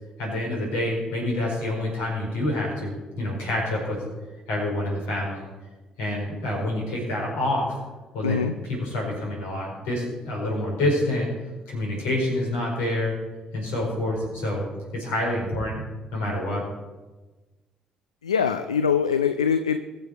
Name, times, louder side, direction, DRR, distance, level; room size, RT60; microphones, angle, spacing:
voice 1, 0.2-4.0 4.5-5.5 6.0-7.8 8.1-11.3 11.7-13.1 13.5-14.6 14.9-15.8 16.1-16.6, left 1 dB, 70° left, -2 dB, 5.1 m, -27 dB
voice 2, 8.2-8.5 18.2-19.8, left 7 dB, 85° left, 11 dB, 0.4 m, -23 dB
21.5 x 7.2 x 4.7 m, 1.2 s
figure-of-eight pair, 45°, 3 cm